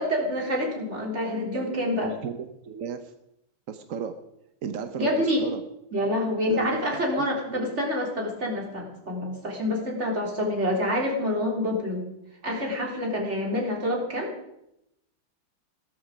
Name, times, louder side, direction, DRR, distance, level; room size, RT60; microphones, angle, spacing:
voice 1, 0.0-2.1 5.0-5.4 5.9-12.1 12.4-14.3, left 1 dB, 30° right, -1 dB, 3.9 m, -27 dB
voice 2, 1.5-2.0 2.2-3.1 3.7-4.1 4.6-5.6 6.5-7.7, right 7 dB, 60° right, 8 dB, 0.9 m, -35 dB
16.5 x 13.0 x 5.0 m, 0.84 s
omnidirectional pair, 2.4 m